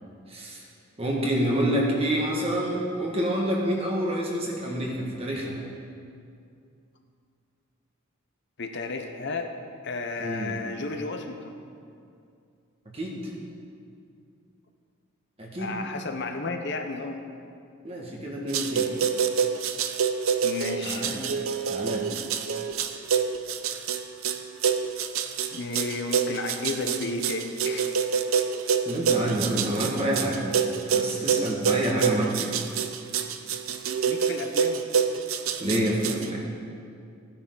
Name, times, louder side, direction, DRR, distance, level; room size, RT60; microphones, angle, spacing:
voice 1, 0.3-0.6 1.0-5.6 10.2-10.6 12.9-13.3 15.4-15.8 17.8-18.9 20.8-21.2 21.7-22.1 28.9-30.4 30.9-32.5 35.6-36.4, right 1 dB, 30° right, -2 dB, 1.8 m, -28 dB
voice 2, 8.6-9.5 9.8-11.5 15.6-17.2 20.4-21.0 25.5-28.0 34.1-34.9, left 3 dB, 55° left, 5 dB, 0.9 m, -33 dB
sound 1, 18.5-36.3, right 6 dB, 80° right, 0.6 m, -27 dB
15.5 x 9.8 x 3.9 m, 2.4 s
head